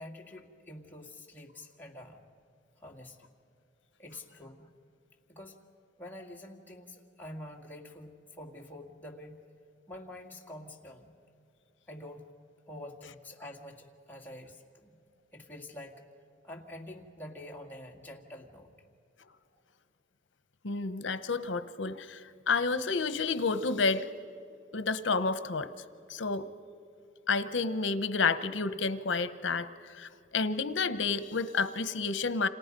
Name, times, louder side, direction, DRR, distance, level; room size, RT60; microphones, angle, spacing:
voice 1, 0.0-2.2 2.8-3.3 4.0-4.7 5.3-5.6 6.0-9.4 9.9-11.1 11.9-12.3 12.7-15.0 15.3-16.0 16.4-18.7 19.5-19.6, left 1 dB, 10° left, -1 dB, 2.1 m, -47 dB
voice 2, 20.6-24.0 24.7-25.7 26.1-26.5 27.3-32.5, left 4 dB, 70° left, 13 dB, 0.9 m, -30 dB
30.0 x 27.0 x 5.3 m, 2.5 s
head